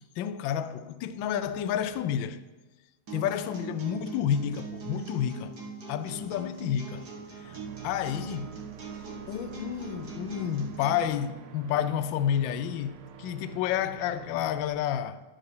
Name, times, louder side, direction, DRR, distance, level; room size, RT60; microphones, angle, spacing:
voice 1, 0.2-2.4 3.1-5.5 5.9-7.1 7.4-7.6 7.8-8.5 9.3-15.2, left 9 dB, 75° left, 1.2 m, -30 dB
sound 1, 3.1-11.1, right 4 dB, 50° right, 2.2 m, -41 dB
sound 2, 7.4-14.7, right 8 dB, 80° right, 1.7 m, -47 dB
11.0 x 8.0 x 5.6 m
omnidirectional pair, 2.4 m